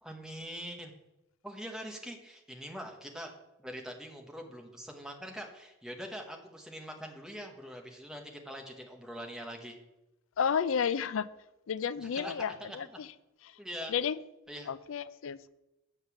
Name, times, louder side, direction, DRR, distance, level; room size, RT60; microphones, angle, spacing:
voice 1, 0.0-0.9 1.4-3.3 3.6-9.8 12.0-12.3 12.6-12.8 13.6-13.9 14.5-14.7, equal, 5° right, 2 dB, 1.1 m, -43 dB
voice 2, 10.4-11.3 11.7-13.1 13.5-13.6 13.9-14.2 14.7-15.5, left 7 dB, 75° left, 16 dB, 0.4 m, -32 dB
8.1 x 5.3 x 7.0 m, 0.94 s
head